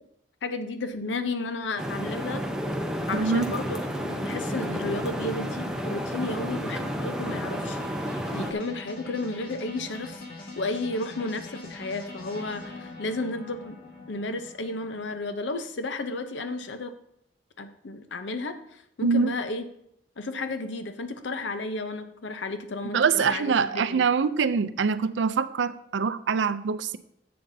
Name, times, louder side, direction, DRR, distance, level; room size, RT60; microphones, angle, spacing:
voice 1, 0.4-2.4 3.1-7.8 8.1-10.2 10.6-13.8 14.1-16.9 17.6-19.7 20.2-24.1, left 2 dB, 90° left, 9 dB, 0.7 m, -33 dB
sound 1, 0.9-15.2, left 3 dB, 55° left, 1.7 m, -43 dB
sound 2, 1.8-8.5, equal, 5° right, 0.7 m, -31 dB
voice 2, 3.1-3.5 19.0-19.3 22.9-27.0, right 5 dB, 85° right, 14 dB, 0.4 m, -24 dB
10.5 x 7.6 x 2.7 m, 0.76 s
head